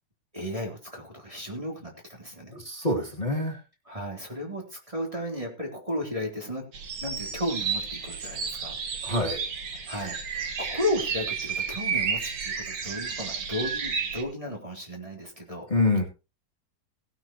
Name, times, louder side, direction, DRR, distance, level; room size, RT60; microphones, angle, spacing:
voice 1, 0.3-2.6 3.9-6.7 7.0-8.8 9.9-15.7, left 1 dB, 15° right, -1 dB, 3.5 m, -34 dB
voice 2, 2.5-3.6 9.0-9.4 15.7-16.0, left 2 dB, 20° left, 0 dB, 2.8 m, -26 dB
sound 1, 6.7-14.2, right 6 dB, 90° right, 2.7 m, -32 dB
17.0 x 12.0 x 3.0 m, 0.31 s
omnidirectional pair, 2.2 m